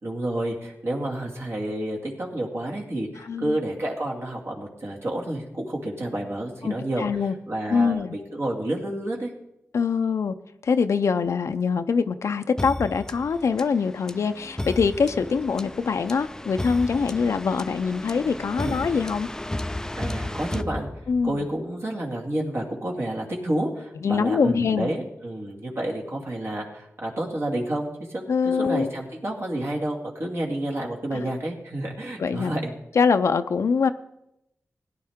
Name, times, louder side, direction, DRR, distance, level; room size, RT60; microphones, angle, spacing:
voice 1, 0.0-7.1 7.5-9.3 18.6-18.8 20.0-20.9 21.2-32.7, right 1 dB, 60° right, -1 dB, 2.3 m, -30 dB
voice 2, 3.2-3.6 6.6-7.4 7.7-8.2 9.7-10.4 10.6-19.3 21.1-21.4 24.0-24.9 28.3-28.9 31.1-31.2 32.2-32.6 32.9-33.9, left 5 dB, 75° left, 8 dB, 0.5 m, -24 dB
sound 1, 12.6-21.4, left 1 dB, 10° left, 0.3 m, -34 dB
17.0 x 10.0 x 3.6 m, 0.85 s
wide cardioid pair, 85°, 5 cm